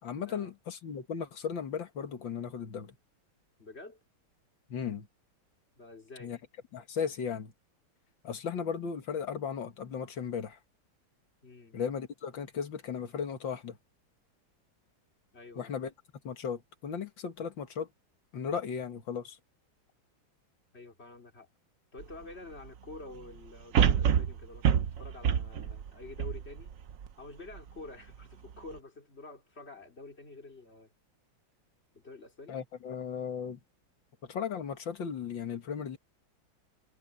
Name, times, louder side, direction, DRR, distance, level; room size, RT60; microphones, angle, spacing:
voice 1, 0.0-3.0 4.7-5.1 6.2-6.4 6.7-7.5 8.2-10.6 11.7-13.8 15.6-15.9 16.2-17.9 18.3-19.4 32.5-33.6 34.3-36.0, left 7 dB, 65° left, 2.4 m, -36 dB
voice 2, 3.6-4.0 5.8-6.3 11.4-11.8 15.3-15.8 20.7-21.5 21.9-26.7 27.2-30.9 31.9-32.6, left 3 dB, 30° left, 3.8 m, -48 dB
sound 1, 22.0-22.1 23.7-27.1 27.6-27.7, right 8 dB, 60° right, 0.9 m, -27 dB
omnidirectional pair, 2.2 m